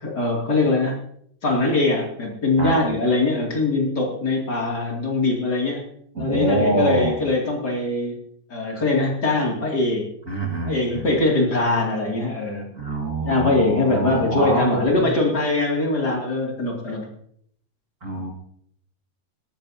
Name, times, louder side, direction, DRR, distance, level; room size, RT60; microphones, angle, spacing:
voice 1, 0.0-1.0 1.4-5.8 6.2-8.2 8.5-10.1 10.6-12.7 13.2-17.1, left 2 dB, 30° left, -1 dB, 2.6 m, -22 dB
voice 2, 6.1-7.2 10.3-11.1 12.7-15.2 18.0-18.3, right 2 dB, 55° right, -1 dB, 0.8 m, -25 dB
20.0 x 13.5 x 2.8 m, 0.66 s
omnidirectional pair, 4.4 m